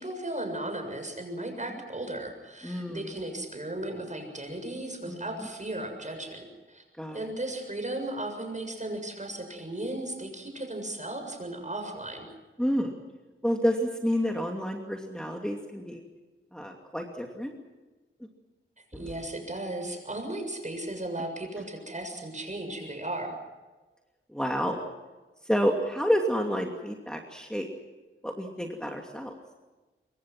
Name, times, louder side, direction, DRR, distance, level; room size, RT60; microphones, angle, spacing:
voice 1, 0.0-6.8 7.1-12.3 18.9-23.4, right 1 dB, 35° right, 4 dB, 7.2 m, -36 dB
voice 2, 2.6-3.1 5.1-5.2 7.0-7.3 12.6-13.0 13.4-16.0 16.5-17.5 18.9-19.0 24.3-24.8 25.4-27.7 28.2-29.3, equal, 5° left, 1 dB, 2.6 m, -29 dB
26.5 x 23.5 x 6.2 m, 1.2 s
wide cardioid pair, 80°, 21 cm